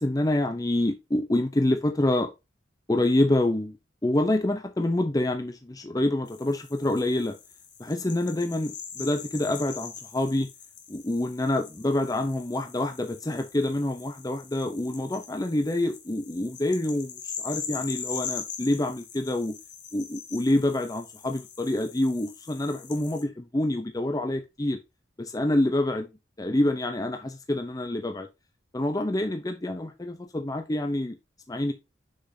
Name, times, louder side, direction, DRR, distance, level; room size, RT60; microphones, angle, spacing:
voice 1, 0.0-2.3 2.9-3.8 4.0-7.3 7.8-10.5 10.9-19.5 19.9-24.8 25.2-26.1 26.4-28.3 28.7-31.2 31.5-31.7, left 1 dB, 20° left, 0.7 m, -27 dB
sound 1, 6.3-23.2, left 7 dB, 80° left, 1.8 m, -42 dB
6.5 x 6.1 x 2.8 m
head